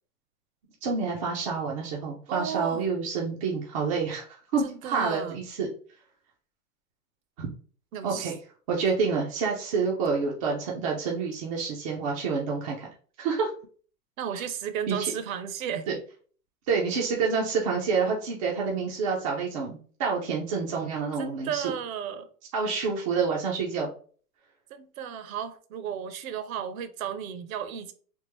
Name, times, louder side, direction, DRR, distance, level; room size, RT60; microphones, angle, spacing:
voice 1, 0.8-5.7 7.4-7.5 8.0-8.4 8.7-12.8 13.2-13.5 14.3-14.4 14.9-15.1 15.9-16.0 16.7-21.7 22.5-23.9, right 5 dB, 25° right, 0.4 m, -28 dB
voice 2, 2.3-2.8 4.6-5.4 7.9-8.3 14.2-15.9 21.2-22.3 24.7-27.9, right 8 dB, 60° right, 0.8 m, -34 dB
3.6 x 2.4 x 3.0 m
hypercardioid pair, 140°, 46 cm